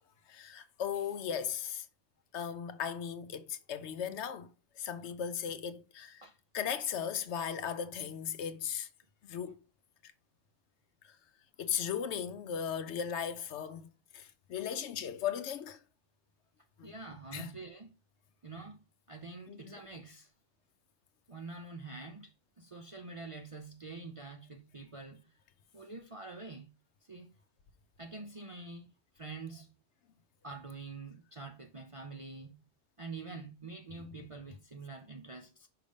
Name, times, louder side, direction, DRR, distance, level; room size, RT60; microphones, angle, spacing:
voice 1, 0.3-1.9 2.3-6.3 6.5-8.9 9.2-9.6 10.0-10.1 11.0-11.1 11.6-13.9 14.1-15.8 16.8-16.9 17.3-17.5 19.5-19.8 34.0-34.2, left 8 dB, 70° left, 0.9 m, -37 dB
voice 2, 16.8-17.9 18.4-18.8 19.1-20.3 21.3-25.3 25.7-26.7 27.1-27.3 28.0-28.9 29.2-29.7 30.4-32.5 33.0-35.7, right 3 dB, 40° right, 0.5 m, -46 dB
5.7 x 3.5 x 5.1 m
omnidirectional pair, 1.3 m